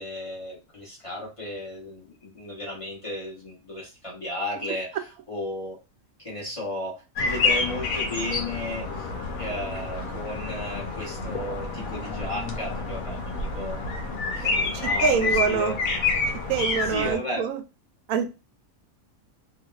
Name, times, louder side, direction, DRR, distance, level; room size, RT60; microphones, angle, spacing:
voice 1, 0.0-5.8 6.2-9.1 9.4-13.9 14.3-15.7 16.8-17.5, left 1 dB, 25° left, -3 dB, 0.9 m, -34 dB
sound 1, 7.2-17.2, left 4 dB, 80° left, 1.2 m, -28 dB
voice 2, 15.0-15.8 16.5-17.6 18.1-18.4, right 6 dB, 85° right, 7 dB, 1.0 m, -25 dB
3.0 x 2.9 x 2.3 m, 0.28 s
omnidirectional pair, 1.4 m